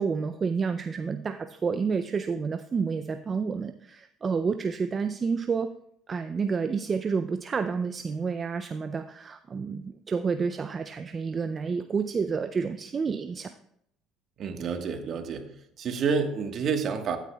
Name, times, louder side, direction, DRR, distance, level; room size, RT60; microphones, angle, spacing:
voice 1, 0.0-5.8 6.1-13.5, right 5 dB, 35° right, 9 dB, 0.4 m, -29 dB
voice 2, 14.4-15.4 15.8-17.2, right 5 dB, 50° right, 6 dB, 1.3 m, -28 dB
13.5 x 9.1 x 2.3 m, 0.73 s
supercardioid pair, 90°, 0 cm